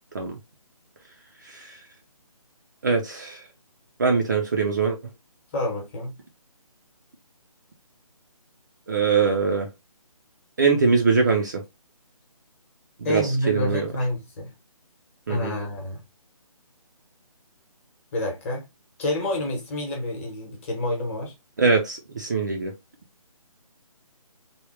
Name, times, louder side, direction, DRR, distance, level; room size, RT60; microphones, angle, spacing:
voice 1, 1.4-1.8 2.8-3.4 4.0-5.0 8.9-9.7 10.6-11.6 13.0-13.9 15.3-15.5 21.6-22.7, right 4 dB, 30° right, 0.4 m, -22 dB
voice 2, 5.5-6.1 13.0-14.5 15.3-16.0 18.1-18.7 19.0-21.3, left 1 dB, 20° left, 1.0 m, -28 dB
3.5 x 2.2 x 3.0 m
figure-of-eight pair, 155°, 19 cm